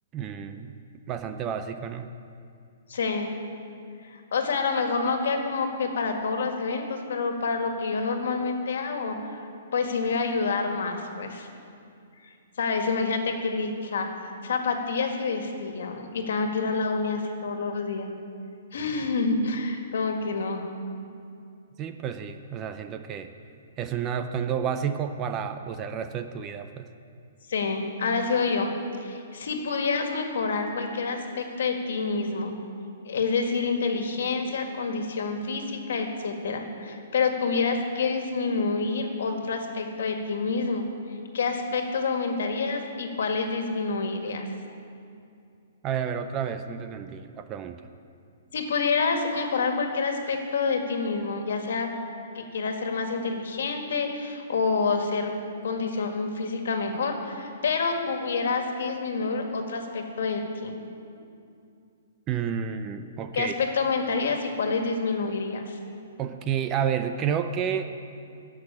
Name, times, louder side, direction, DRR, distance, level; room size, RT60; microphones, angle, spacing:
voice 1, 0.1-0.8 1.1-2.1 21.8-23.3 23.8-26.9 45.8-47.8 62.3-63.6 66.2-67.8, right 8 dB, 15° right, 9 dB, 0.4 m, -30 dB
voice 2, 2.9-3.4 4.0-9.2 9.7-11.5 12.6-14.1 14.4-18.1 18.7-20.6 27.5-32.5 33.0-40.9 41.3-44.5 48.5-51.9 52.4-55.3 55.6-60.7 63.3-65.8, left 4 dB, 65° left, 4 dB, 1.7 m, -28 dB
14.0 x 6.1 x 8.4 m, 2.5 s
hypercardioid pair, 175°, 0 cm